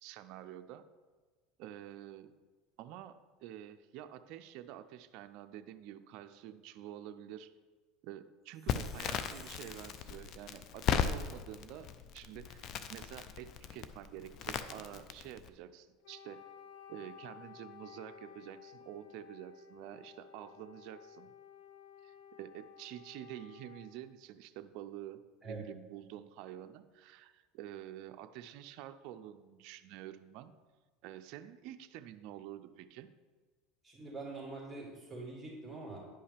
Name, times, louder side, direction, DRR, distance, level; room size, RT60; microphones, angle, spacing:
voice 1, 0.0-0.8 1.6-2.3 2.8-7.5 8.0-16.4 16.9-21.3 22.0-25.2 25.5-30.5 31.0-33.1, right 12 dB, 65° right, 9 dB, 0.4 m, -48 dB
Chime, 8.5-10.5, left 1 dB, 25° left, 1.6 m, -62 dB
Crackle, 8.7-15.5, left 7 dB, 50° left, 0.5 m, -37 dB
Wind instrument woodwind instrument, 16.0-24.0, left 8 dB, 75° left, 0.9 m, -55 dB
voice 2, 33.8-36.0, right 3 dB, 5° right, -5 dB, 2.4 m, -44 dB
10.0 x 5.4 x 3.4 m, 1.4 s
supercardioid pair, 110°, 0 cm